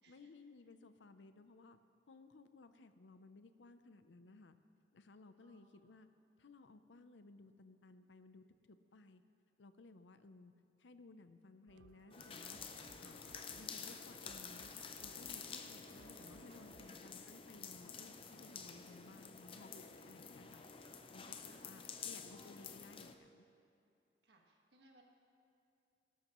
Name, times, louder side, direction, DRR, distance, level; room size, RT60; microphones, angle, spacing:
voice 1, 0.1-1.8 2.1-4.6 4.9-6.1 6.4-9.2 9.6-10.5 10.8-12.6 13.0-14.7 15.0-20.6 21.1-23.4, left 3 dB, 85° left, 10 dB, 0.6 m, -59 dB
voice 2, 5.4-5.8 15.4-15.7 20.8-21.8 24.2-25.0, right 2 dB, 65° right, 0 dB, 1.6 m, -69 dB
sound 1, 11.7-17.0, right 6 dB, 85° right, 0.4 m, -64 dB
sound 2, 12.1-23.2, left 6 dB, 30° left, 0.5 m, -50 dB
17.5 x 12.5 x 3.1 m, 2.6 s
head